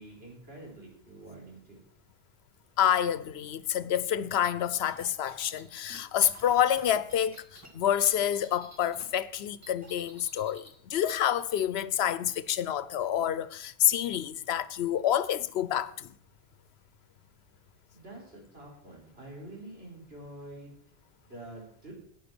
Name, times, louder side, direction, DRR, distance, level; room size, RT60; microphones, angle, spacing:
voice 1, 0.0-1.8 17.9-20.7 21.2-21.9, right 1 dB, 75° right, 4.3 m, -47 dB
voice 2, 2.8-16.1, left 10 dB, 85° left, 0.9 m, -28 dB
sound 1, 4.8-9.0 9.3-10.8, right 1 dB, 15° right, 2.0 m, -52 dB
10.5 x 9.3 x 6.0 m
omnidirectional pair, 1.0 m